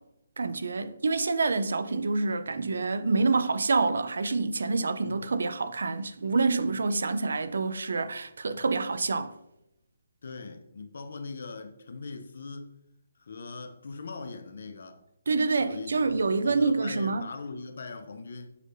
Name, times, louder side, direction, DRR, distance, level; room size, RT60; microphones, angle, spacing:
voice 1, 0.4-9.3 15.3-17.3, right 3 dB, 75° right, 0.3 m, -27 dB
voice 2, 5.0-5.4 10.2-12.7 13.2-15.0 15.6-18.5, left 4 dB, 60° left, 0.5 m, -41 dB
6.4 x 3.2 x 2.5 m
hypercardioid pair, 175°, 0 cm